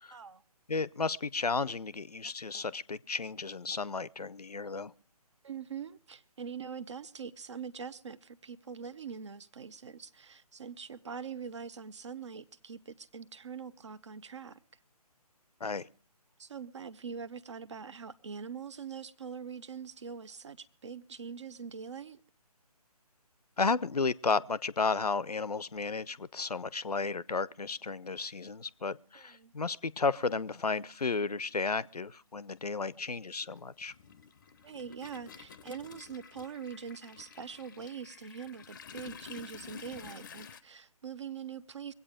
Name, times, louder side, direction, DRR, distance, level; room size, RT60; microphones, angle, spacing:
voice 1, 0.1-0.4 5.4-14.6 16.4-22.2 29.1-29.5 34.6-41.9, right 6 dB, 45° right, 0.9 m, -43 dB
voice 2, 0.7-4.9 15.6-15.9 23.6-33.9, left 4 dB, 75° left, 0.7 m, -33 dB
Toilet flush, 30.1-30.2 31.5-31.6 32.0-40.6, left 6 dB, 30° left, 0.7 m, -50 dB
23.0 x 8.6 x 5.0 m
figure-of-eight pair, 145°, 20 cm